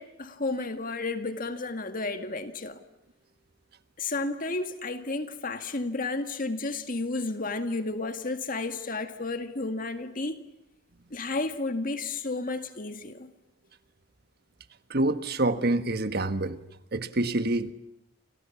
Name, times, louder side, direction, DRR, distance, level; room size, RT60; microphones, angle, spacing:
voice 1, 0.0-2.8 4.0-10.4 11.1-13.3, left 3 dB, 50° left, 2.0 m, -32 dB
voice 2, 14.9-16.6 16.9-17.7, right 2 dB, 55° right, 1.5 m, -26 dB
29.5 x 27.0 x 7.2 m
head